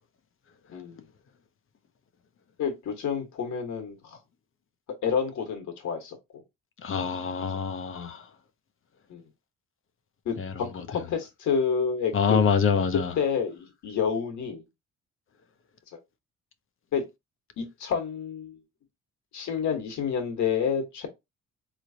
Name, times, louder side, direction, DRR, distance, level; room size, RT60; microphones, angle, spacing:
voice 1, 0.7-1.1 2.6-4.2 5.0-6.4 7.5-7.7 9.1-9.2 10.2-12.4 13.2-14.6 16.9-17.0 17.6-18.6 19.3-21.1, left 6 dB, 70° left, 1.4 m, -29 dB
voice 2, 6.8-8.3 10.4-10.9 12.1-13.1, left 6 dB, 45° left, 0.7 m, -26 dB
3.9 x 3.1 x 2.7 m
cardioid pair, 90°, 30 cm